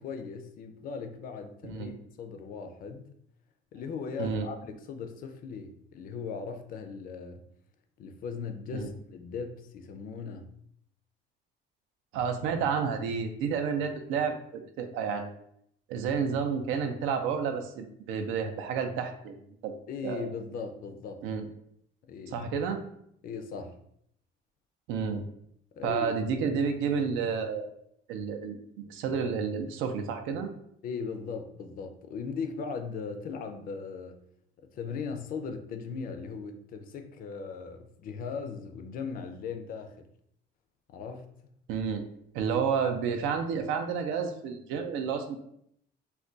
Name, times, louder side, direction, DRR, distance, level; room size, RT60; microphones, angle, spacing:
voice 1, 0.0-3.1 3.7-7.4 8.0-10.5 19.9-21.2 22.0-22.4 23.2-23.8 25.8-26.2 30.8-34.2 34.7-39.9 40.9-41.5, left 5 dB, 45° left, 6 dB, 0.4 m, -38 dB
voice 2, 1.6-1.9 4.2-4.5 8.7-8.9 12.1-15.3 15.9-19.4 19.6-19.8 20.0-20.3 21.2-21.5 22.3-22.8 24.9-25.2 25.8-27.7 28.1-30.5 41.7-42.0 42.3-45.4, right 6 dB, 85° right, 6 dB, 0.5 m, -30 dB
2.3 x 2.2 x 3.7 m, 0.71 s
cardioid pair, 155°, 20 cm